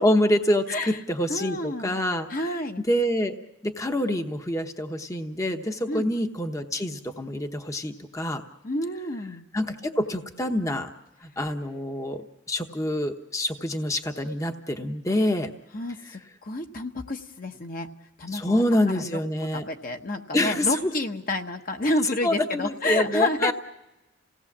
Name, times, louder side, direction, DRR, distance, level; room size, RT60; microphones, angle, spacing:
voice 1, 0.0-2.3 2.9-3.4 3.6-8.4 9.5-10.9 11.2-15.5 18.3-19.6 20.3-20.9 22.2-23.5, left 1 dB, 15° left, 5 dB, 0.9 m, -26 dB
voice 2, 1.3-2.0 2.3-2.8 5.9-6.1 8.6-9.5 15.7-17.9 18.2-19.2 19.5-23.5, left 2 dB, 45° left, 5 dB, 1.1 m, -29 dB
28.5 x 17.5 x 7.3 m, 1.0 s
head